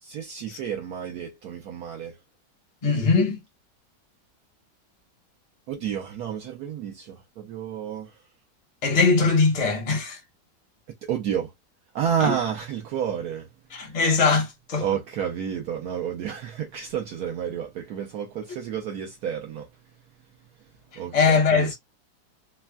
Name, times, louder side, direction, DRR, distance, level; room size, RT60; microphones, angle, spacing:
voice 1, 0.0-2.2 5.7-8.2 11.1-11.5 11.9-13.5 13.8-13.9 14.8-19.7 20.6-20.7 21.0-21.8, right 8 dB, 70° right, 1.0 m, -30 dB
voice 2, 2.8-3.4 8.8-10.2 12.2-12.3 13.7-14.8 21.1-21.8, left 4 dB, 35° left, 0.7 m, -21 dB
3.3 x 2.1 x 2.2 m
omnidirectional pair, 1.9 m